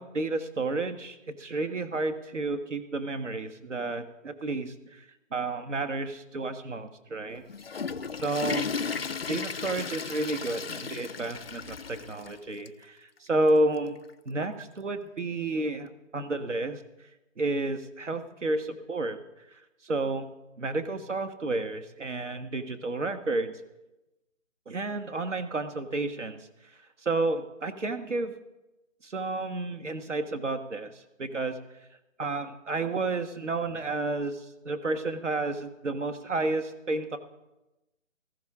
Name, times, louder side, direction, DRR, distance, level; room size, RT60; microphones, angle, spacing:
voice 1, 0.0-7.4 8.2-8.7 9.3-16.8 17.4-19.2 19.5-20.3 20.6-23.5 24.7-26.5 27.0-28.3 29.0-31.6 32.2-37.2, right 2 dB, 65° right, 9 dB, 1.6 m, -31 dB
Water / Toilet flush, 7.3-12.3 12.7-12.8 13.5-13.6 14.9-15.0, left 5 dB, 50° left, 0.5 m, -35 dB
16.0 x 14.5 x 3.7 m, 1.0 s
figure-of-eight pair, 165°, 39 cm